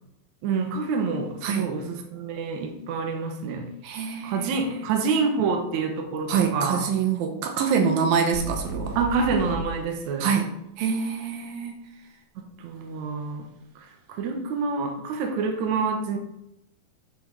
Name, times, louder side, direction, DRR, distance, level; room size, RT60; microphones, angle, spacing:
voice 1, 0.4-3.7 4.2-6.8 9.0-10.3 12.4-13.5 14.1-16.2, right 4 dB, 65° right, 3 dB, 2.3 m, -27 dB
voice 2, 3.8-4.9 6.3-9.0 10.2-10.5 10.8-11.8, right 6 dB, 80° right, 4 dB, 2.8 m, -25 dB
sound 1, 8.3-9.6, right 2 dB, 5° left, 2.5 m, -33 dB
9.2 x 6.2 x 4.7 m, 0.83 s
omnidirectional pair, 4.2 m